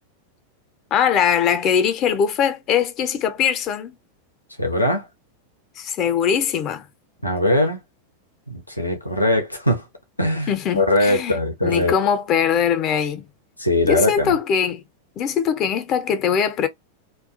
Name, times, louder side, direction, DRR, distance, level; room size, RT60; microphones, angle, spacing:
voice 1, 0.9-4.0 5.8-6.9 10.5-13.3 13.9-14.8 15.2-16.7, left 8 dB, 35° left, 0.5 m, -21 dB
voice 2, 4.6-5.1 7.2-7.8 8.5-9.8 10.2-11.9 13.6-14.3, left 1 dB, 85° left, 0.5 m, -21 dB
2.3 x 2.1 x 2.6 m
figure-of-eight pair, 90°, 0 cm